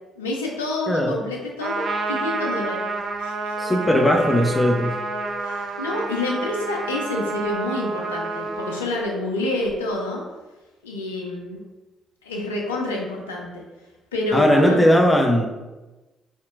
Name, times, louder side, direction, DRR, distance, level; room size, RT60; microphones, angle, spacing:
voice 1, 0.2-2.9 3.2-3.7 5.4-10.2 10.8-11.6 12.2-13.6 14.1-14.8, left 2 dB, 90° left, 0 dB, 0.6 m, -27 dB
Trumpet, 1.6-8.8, right 3 dB, 55° right, 0.4 m, -29 dB
voice 2, 3.6-5.0 14.3-15.5, equal, 10° left, 3 dB, 0.6 m, -18 dB
sound 1, 4.0-6.2 8.4-10.0, left 1 dB, 90° right, 1.2 m, -36 dB
4.3 x 2.9 x 2.5 m, 1.1 s
hypercardioid pair, 45°, 0 cm